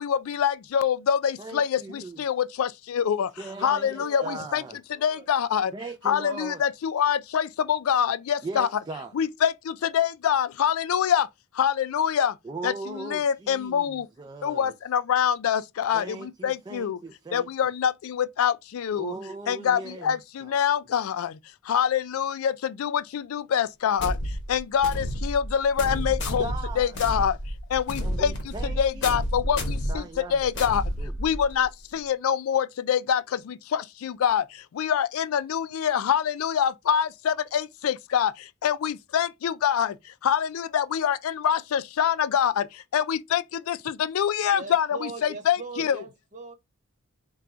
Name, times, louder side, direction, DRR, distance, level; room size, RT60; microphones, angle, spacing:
voice 1, 0.0-3.3 3.6-4.6 5.0-5.7 6.0-8.7 9.1-11.3 11.5-12.4 12.6-14.1 14.4-17.0 17.3-19.1 19.5-21.4 21.6-27.4 27.7-30.8 31.2-46.0, left 8 dB, 75° left, 0.3 m, -25 dB
voice 2, 1.4-2.2 3.4-4.8 5.7-6.6 8.4-9.1 12.4-14.7 15.9-17.5 18.9-20.6 26.4-27.0 28.0-30.7 31.0-31.2, right 3 dB, 20° right, 0.3 m, -39 dB
voice 3, 3.5-5.3 44.5-46.5, right 3 dB, 35° right, 1.1 m, -40 dB
sound 1, 24.0-31.6, equal, 55° left, 1.1 m, -30 dB
4.6 x 2.3 x 3.7 m
head